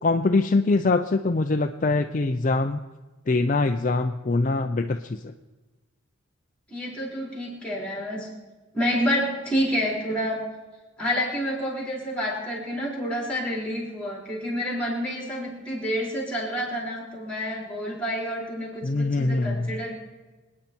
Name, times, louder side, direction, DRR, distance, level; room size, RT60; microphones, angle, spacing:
voice 1, 0.0-2.8 3.3-5.3 18.8-19.7, left 3 dB, 40° left, 6 dB, 0.5 m, -23 dB
voice 2, 6.7-8.3 8.7-10.4 11.0-19.9, equal, 5° left, -2 dB, 4.2 m, -28 dB
25.0 x 9.7 x 4.4 m, 1.2 s
head